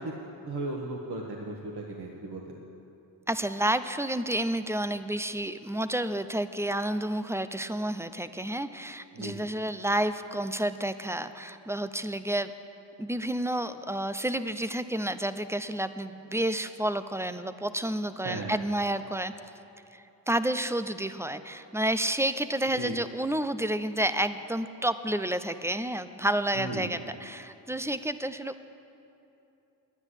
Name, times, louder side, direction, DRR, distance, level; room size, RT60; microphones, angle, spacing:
voice 1, 0.0-2.6 9.1-9.4 18.2-18.6 22.7-23.0 26.5-26.9, right 2 dB, 55° right, -1 dB, 1.6 m, -36 dB
voice 2, 3.3-12.5 13.0-19.3 19.9-28.7, right 1 dB, 5° right, 12 dB, 0.6 m, -30 dB
10.5 x 9.7 x 8.1 m, 2.9 s
supercardioid pair, 50°, 46 cm